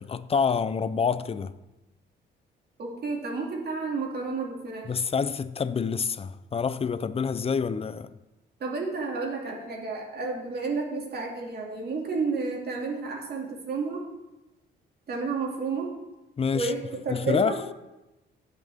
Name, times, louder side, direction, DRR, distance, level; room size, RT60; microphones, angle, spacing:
voice 1, 0.0-1.5 4.8-8.1 16.4-16.7 17.1-17.6, left 6 dB, 30° left, 0.5 m, -27 dB
voice 2, 2.8-4.9 8.6-14.0 15.1-15.9 16.5-17.6, right 4 dB, 55° right, 2.4 m, -31 dB
16.5 x 6.0 x 3.5 m
cardioid pair, 90°, 20 cm